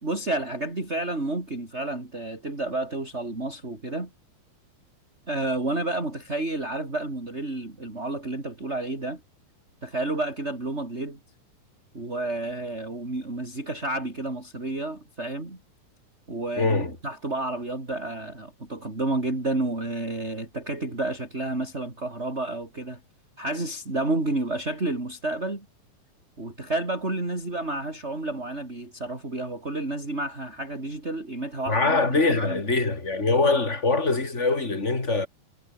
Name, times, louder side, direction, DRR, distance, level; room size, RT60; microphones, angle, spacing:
voice 1, 0.0-4.1 5.3-9.2 9.8-11.2 11.9-15.6 16.3-23.0 23.4-25.7 26.4-32.6, right 2 dB, 20° right, 5.0 m, -30 dB
voice 2, 16.6-16.9 31.7-35.3, left 3 dB, 20° left, 4.5 m, -23 dB
omnidirectional pair, 3.5 m